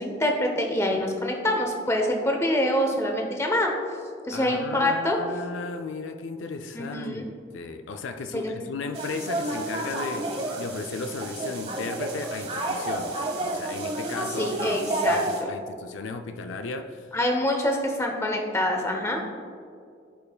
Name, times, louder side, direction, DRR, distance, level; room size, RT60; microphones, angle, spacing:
voice 1, 0.0-3.7 4.3-5.2 6.7-7.2 8.3-8.7 14.4-15.2 17.1-19.2, left 1 dB, 15° left, 2 dB, 0.8 m, -25 dB
voice 2, 4.3-17.1, left 3 dB, 75° left, 7 dB, 0.4 m, -35 dB
sound 1, 8.9-15.4, right 2 dB, 30° right, 1.1 m, -30 dB
14.5 x 5.4 x 2.3 m, 2.3 s
head